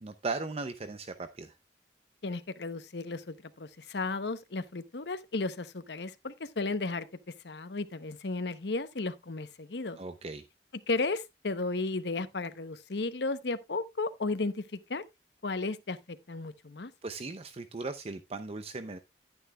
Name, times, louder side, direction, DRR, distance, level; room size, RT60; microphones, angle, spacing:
voice 1, 0.0-1.5 10.0-10.4 17.0-19.0, right 3 dB, 35° right, 0.6 m, -37 dB
voice 2, 2.2-7.1 7.4-10.0 10.9-15.0 15.4-16.9, left 3 dB, 65° left, 0.9 m, -34 dB
11.0 x 9.8 x 2.3 m
head